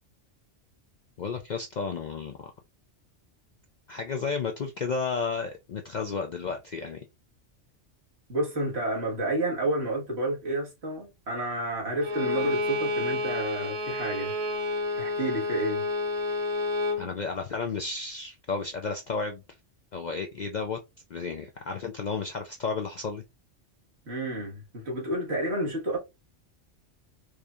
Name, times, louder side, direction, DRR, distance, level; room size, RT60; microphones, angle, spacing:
voice 1, 1.2-2.5 3.9-7.0 17.0-19.4 19.9-20.8 21.1-23.2, left 4 dB, 55° left, 0.5 m, -32 dB
voice 2, 8.3-14.3 15.0-15.8 24.1-26.0, right 1 dB, 60° right, 1.8 m, -30 dB
Bowed string instrument, 12.0-17.0, left 2 dB, 80° right, 1.3 m, -29 dB
4.8 x 2.7 x 2.4 m
omnidirectional pair, 1.3 m